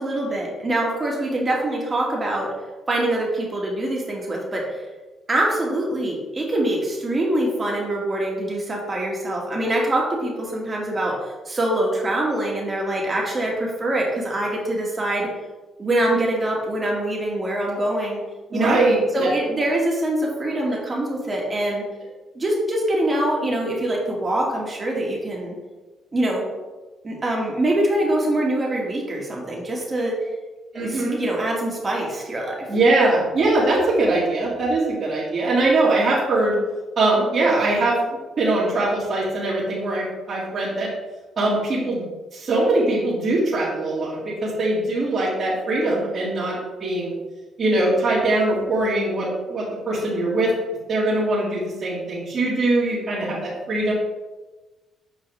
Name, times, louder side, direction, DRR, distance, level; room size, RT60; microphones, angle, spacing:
voice 1, 0.0-2.5 2.9-4.8 5.3-15.3 15.8-18.2 18.5-18.8 19.1-21.9 22.3-25.6 26.1-26.5 27.0-30.1 30.7-32.7, right 1 dB, 30° right, -2 dB, 2.2 m, -24 dB
voice 2, 18.5-19.3 30.7-31.2 32.7-36.6 37.0-40.9 41.4-42.0 42.3-47.1 47.6-50.5 50.9-53.9, right 2 dB, 50° right, -10 dB, 2.2 m, -22 dB
7.5 x 5.2 x 3.5 m, 1.2 s
cardioid pair, 90°, 0 cm